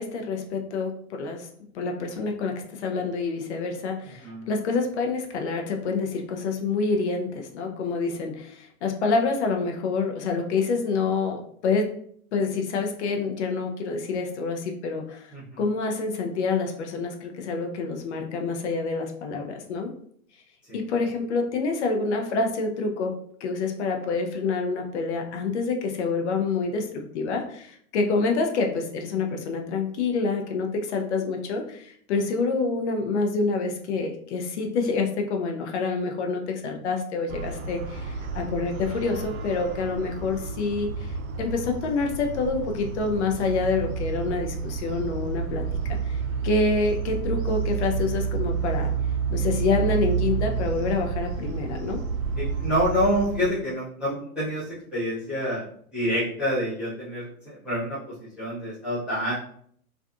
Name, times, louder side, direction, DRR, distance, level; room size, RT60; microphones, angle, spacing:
voice 1, 0.0-1.5 1.7-11.9 12.3-15.3 15.6-19.9 20.7-23.1 23.4-45.6 45.9-48.9 49.3-52.0, left 4 dB, 50° left, 3 dB, 0.6 m, -27 dB
voice 2, 15.3-15.6 20.7-20.8 52.4-54.6 54.9-55.6 55.9-58.0 58.4-59.3, equal, 5° right, -15 dB, 0.3 m, -27 dB
sound 1, 37.3-53.5, right 3 dB, 65° right, 0.5 m, -35 dB
sound 2, 43.4-53.3, right 7 dB, 85° left, 0.9 m, -29 dB
2.5 x 2.3 x 2.4 m, 0.62 s
figure-of-eight pair, 110°, 44 cm